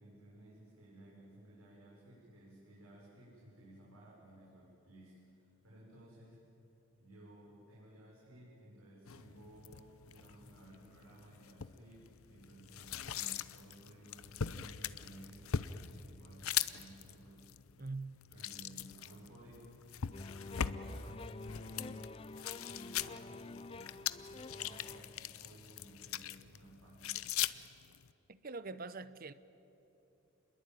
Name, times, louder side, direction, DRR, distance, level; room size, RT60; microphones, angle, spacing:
voice 1, 0.0-6.4 7.0-17.5 18.3-19.7 20.4-22.1 22.5-27.3, right 1 dB, 85° right, 6.3 m, -57 dB
sound 1, 9.1-28.1, left 9 dB, 80° left, 0.7 m, -42 dB
voice 2, 17.8-18.2 28.3-29.3, right 3 dB, 45° right, 0.8 m, -43 dB
sound 2, 20.1-25.1, left 3 dB, 25° left, 0.5 m, -48 dB
28.0 x 21.5 x 9.3 m
head